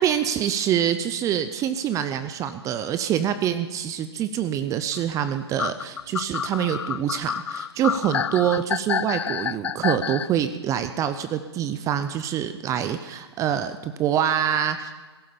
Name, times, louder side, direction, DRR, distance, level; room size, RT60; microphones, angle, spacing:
voice 1, 0.0-14.9, right 9 dB, 25° right, 10 dB, 0.6 m, -25 dB
sound 1, 5.6-10.3, left 8 dB, 85° left, 0.4 m, -28 dB
16.5 x 11.0 x 7.0 m, 1.3 s
hypercardioid pair, 125°, 14 cm